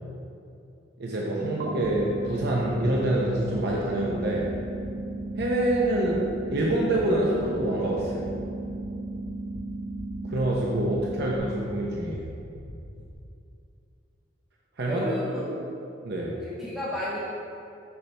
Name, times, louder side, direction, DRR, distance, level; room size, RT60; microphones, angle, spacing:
voice 1, 1.0-4.5 5.4-6.2 6.5-8.3 10.3-12.3 14.8-15.0 16.0-16.3, right 1 dB, 60° right, -3 dB, 0.7 m, -26 dB
sound 1, 1.4-11.4, right 2 dB, 30° left, 1.0 m, -35 dB
sound 2, 1.8-13.1, left 2 dB, 65° left, 0.6 m, -42 dB
voice 2, 14.9-15.5 16.3-17.2, left 1 dB, 5° right, -9 dB, 0.9 m, -33 dB
6.9 x 6.6 x 3.3 m, 2.6 s
head